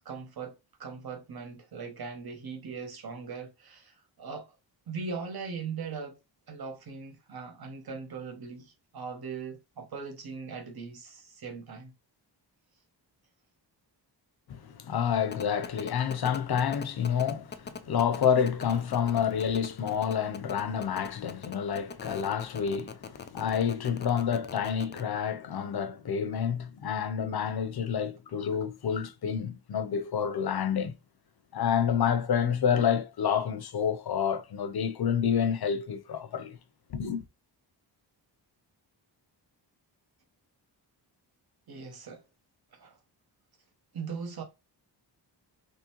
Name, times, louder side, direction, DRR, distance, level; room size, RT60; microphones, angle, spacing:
voice 1, 0.0-4.6 4.9-6.2 6.5-11.9 41.7-42.2 42.7-43.0 43.9-44.4, right 5 dB, 55° right, 1.1 m, -40 dB
voice 2, 14.5-30.9 31.5-36.6 36.9-37.2, left 8 dB, 60° left, 0.6 m, -29 dB
sound 1, 15.3-25.0, left 5 dB, 25° left, 0.3 m, -40 dB
3.7 x 3.2 x 2.9 m
wide cardioid pair, 170°, 44 cm